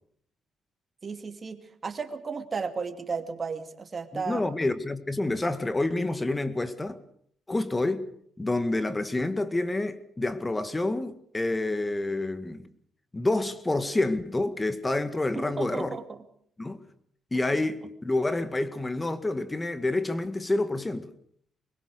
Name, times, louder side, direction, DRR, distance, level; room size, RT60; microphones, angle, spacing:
voice 1, 1.0-4.5 15.3-16.2, right 5 dB, 35° right, 2.6 m, -34 dB
voice 2, 4.1-7.0 7.5-8.1 8.4-12.7 13.1-16.0 16.6-16.8 17.3-21.1, left 2 dB, 15° left, 2.0 m, -28 dB
24.0 x 21.0 x 6.6 m
cardioid pair, 90°, 0 cm